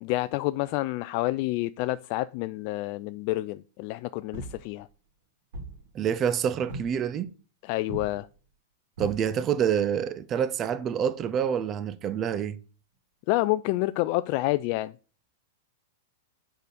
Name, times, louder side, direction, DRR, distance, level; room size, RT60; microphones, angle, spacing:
voice 1, 0.0-4.9 7.6-8.3 13.3-14.9, left 18 dB, 50° left, 0.3 m, -28 dB
sound 1, 4.3-5.1 5.5-6.2 6.7-7.2 7.8-8.5 9.0-9.6 10.7-10.9 12.9-13.0, right 2 dB, 70° right, 3.1 m, -41 dB
voice 2, 5.9-7.3 9.0-12.6, right 8 dB, 30° right, 0.7 m, -27 dB
6.6 x 5.0 x 6.7 m
hypercardioid pair, 115°, 0 cm